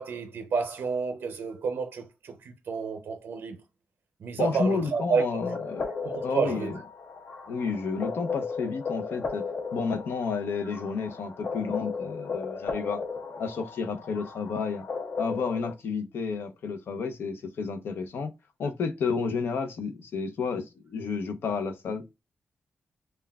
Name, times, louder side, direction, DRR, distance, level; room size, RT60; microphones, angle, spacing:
voice 1, 0.0-3.6 4.2-5.3 6.0-6.8, right 5 dB, 65° right, 0.5 m, -30 dB
voice 2, 4.4-5.9 6.2-6.7 7.5-9.4 9.7-13.0 13.4-14.8 15.2-18.3 18.6-22.1, left 5 dB, 75° left, 0.7 m, -31 dB
sound 1, 5.4-15.7, left 5 dB, 40° left, 0.6 m, -36 dB
5.6 x 2.2 x 2.3 m
wide cardioid pair, 175°, 4 cm